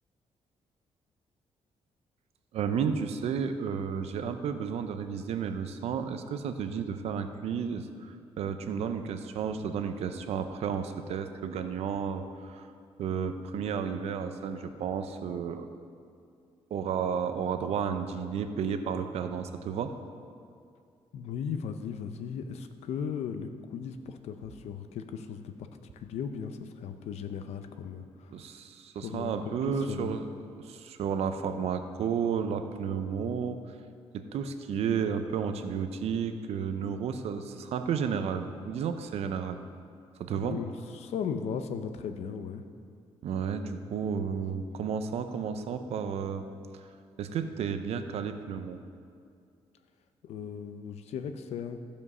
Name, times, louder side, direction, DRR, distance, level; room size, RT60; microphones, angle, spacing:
voice 1, 2.5-12.7 13.0-15.7 16.7-19.9 28.3-30.3 30.6-33.6 34.1-39.6 40.2-40.6 43.2-46.4 46.7-46.9 47.2-48.8, right 7 dB, 75° right, 8 dB, 0.7 m, -32 dB
voice 2, 21.1-25.5 26.0-28.4 29.0-30.1 40.3-42.6 44.2-44.7 50.2-51.8, left 7 dB, 85° left, 8 dB, 0.7 m, -37 dB
14.5 x 5.3 x 5.4 m, 2.3 s
cardioid pair, 145°, 11 cm